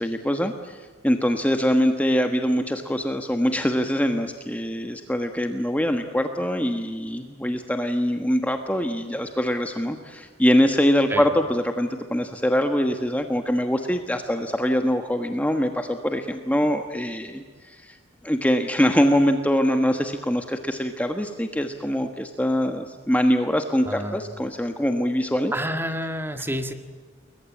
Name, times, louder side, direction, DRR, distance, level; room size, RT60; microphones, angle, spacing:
voice 1, 0.0-18.0 18.2-25.5, equal, 5° left, 6 dB, 1.3 m, -23 dB
voice 2, 23.9-24.3 25.5-26.7, equal, 10° right, 8 dB, 1.8 m, -29 dB
29.0 x 22.5 x 8.7 m, 1.6 s
head